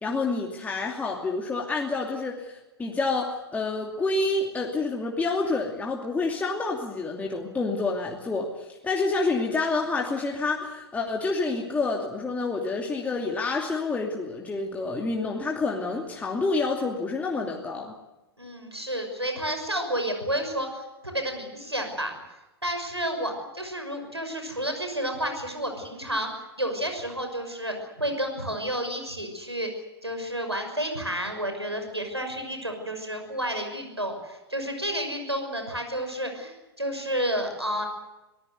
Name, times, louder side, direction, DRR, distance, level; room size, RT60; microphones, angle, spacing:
voice 1, 0.0-18.0, left 3 dB, 10° left, 0 dB, 2.7 m, -28 dB
voice 2, 18.4-22.1 22.6-29.7 30.0-37.9, equal, 90° right, 5 dB, 6.1 m, -31 dB
25.5 x 18.5 x 8.1 m, 1.0 s
figure-of-eight pair, 100°, 13 cm